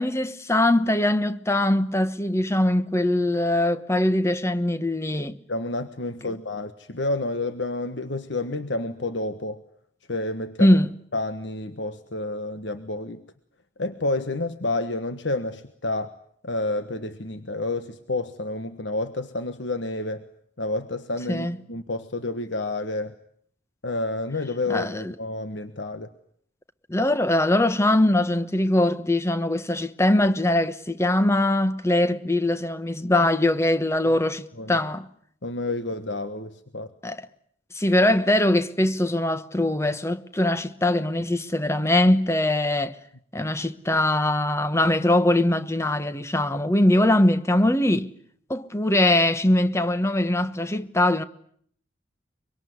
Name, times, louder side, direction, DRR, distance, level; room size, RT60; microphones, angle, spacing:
voice 1, 0.0-5.4 10.6-10.9 21.3-21.6 24.7-25.1 26.9-35.1 37.0-37.2 37.7-43.0 43.3-48.1 48.5-51.2, left 1 dB, 15° left, 1.1 m, -22 dB
voice 2, 5.5-9.6 10.1-10.8 11.1-13.2 13.8-16.1 16.4-20.2 20.6-23.1 23.8-26.1 34.6-34.7 35.4-36.9, left 2 dB, 70° left, 1.4 m, -29 dB
24.5 x 24.5 x 9.5 m
head